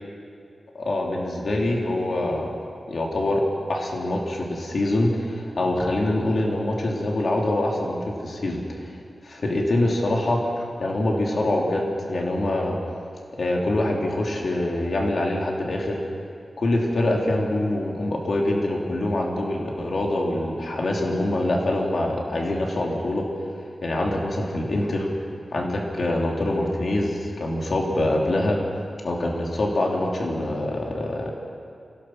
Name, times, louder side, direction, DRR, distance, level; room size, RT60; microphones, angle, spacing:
voice 1, 0.7-2.5 2.9-3.4 3.7-8.9 9.2-12.8 13.4-16.0 16.6-23.3 23.8-25.1 25.5-28.6 29.0-31.3, left 1 dB, 55° left, -1 dB, 3.1 m, -24 dB
26.5 x 17.5 x 6.1 m, 2.4 s
wide cardioid pair, 145°, 0 cm